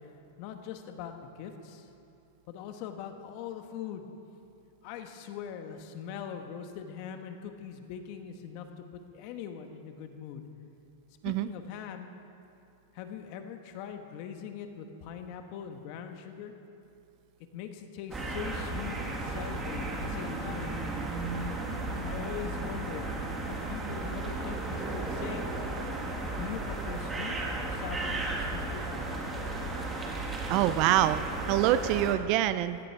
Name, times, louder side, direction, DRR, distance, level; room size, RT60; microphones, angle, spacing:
voice 1, 0.4-1.9 2.5-4.1 4.8-10.5 11.2-12.1 12.9-16.5 17.5-20.7 22.0-23.1 23.5-25.6 26.3-29.0, left 8 dB, 50° left, 6 dB, 1.4 m, -41 dB
sound 1, 18.1-32.1, right 2 dB, 15° right, 1.9 m, -34 dB
voice 2, 30.5-32.8, right 13 dB, 45° right, 13 dB, 0.5 m, -25 dB
16.5 x 14.0 x 4.7 m, 2.7 s
supercardioid pair, 140°, 0 cm